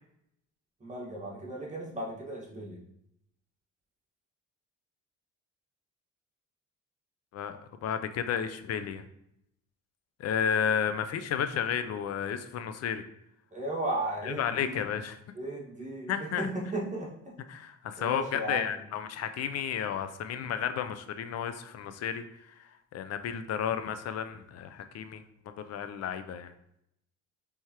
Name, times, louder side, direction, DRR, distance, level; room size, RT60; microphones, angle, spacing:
voice 1, 0.8-2.8 13.5-14.9 15.3-17.3 18.0-18.8, right 1 dB, 25° right, -4 dB, 1.4 m, -35 dB
voice 2, 7.3-9.1 10.2-13.0 14.3-15.2 16.1-16.5 17.5-22.2 22.9-26.5, left 8 dB, 55° left, 10 dB, 0.5 m, -32 dB
4.5 x 3.5 x 2.9 m, 0.77 s
cardioid pair, 90°, 31 cm